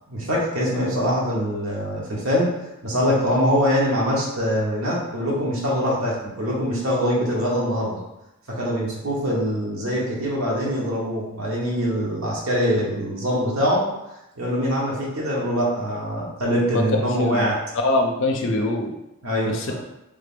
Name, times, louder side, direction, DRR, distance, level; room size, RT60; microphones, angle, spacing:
voice 1, 0.1-2.5 2.8-8.0 8.5-13.9 14.4-17.6 19.2-19.7, equal, 75° right, -4 dB, 0.9 m, -23 dB
voice 2, 16.7-17.5 17.8-18.9 19.4-19.7, left 2 dB, 60° left, 2 dB, 0.5 m, -23 dB
3.3 x 2.5 x 3.5 m, 0.91 s
head